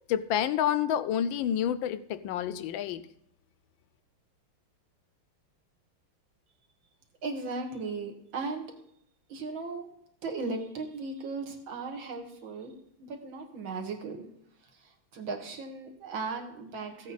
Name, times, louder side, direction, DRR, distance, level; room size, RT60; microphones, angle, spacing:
voice 1, 0.1-3.0, left 10 dB, 75° left, 14 dB, 1.3 m, -28 dB
voice 2, 7.2-8.7 9.3-9.9 10.2-14.3 14.6-17.1, right 3 dB, 70° right, 3 dB, 2.3 m, -37 dB
15.0 x 8.4 x 4.0 m, 0.76 s
omnidirectional pair, 2.3 m